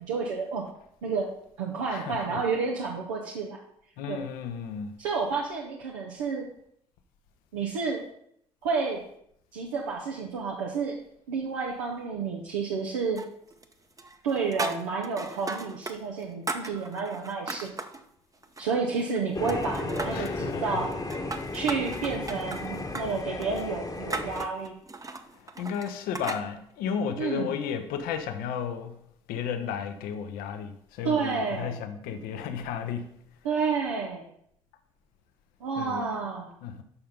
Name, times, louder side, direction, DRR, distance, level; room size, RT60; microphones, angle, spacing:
voice 1, 0.1-0.6 1.0-1.3 1.6-3.6 4.1-4.2 5.0-6.5 7.5-8.0 8.6-9.0 9.5-11.0 11.3-13.2 14.2-17.7 18.6-20.9 21.5-24.7 27.2-27.5 31.0-31.8 33.4-34.3 35.6-36.5, right 5 dB, 80° right, 0.9 m, -30 dB
voice 2, 1.9-2.4 4.0-4.9 20.1-20.8 25.6-29.0 29.3-33.1 35.8-36.1 36.6-36.8, left 7 dB, 65° left, 0.9 m, -33 dB
sound 1, 13.2-13.7 14.0-16.0 16.2-18.0 18.4-19.2 19.5-20.4 20.9-26.4, right 3 dB, 20° right, 0.8 m, -37 dB
sound 2, 19.3-24.5, left 3 dB, 25° left, 1.2 m, -34 dB
7.0 x 5.6 x 5.2 m
figure-of-eight pair, 50°, 16 cm